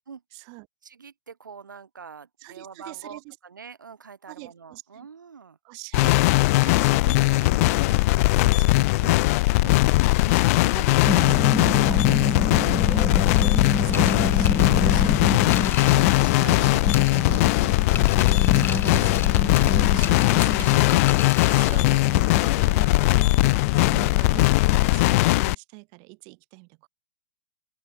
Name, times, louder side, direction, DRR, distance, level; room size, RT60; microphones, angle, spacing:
voice 1, 0.3-0.7 2.4-3.4 4.3-5.1 5.6-9.2 9.6-9.9 10.2-12.5 12.8-13.2 13.8-15.2 15.7-17.6 17.9-18.1 18.4-22.2 23.4-23.5 23.9-26.9, right 37 dB, 45° right, 7.1 m, -42 dB
voice 2, 0.8-5.6 9.5-9.7 12.5-13.3 15.5-15.8 16.2-16.6 17.0-18.2 20.4-20.7 21.0-23.6, right 6 dB, 90° right, 5.2 m, -46 dB
sound 1, 5.9-25.5, left 21 dB, 50° left, 0.5 m, -20 dB
sound 2, 10.7-24.9, left 1 dB, ahead, 0.7 m, -30 dB
sound 3, 13.4-16.6 16.9-17.6 18.0-21.8, left 8 dB, 20° left, 3.7 m, -37 dB
open air
hypercardioid pair, 120°, 10 cm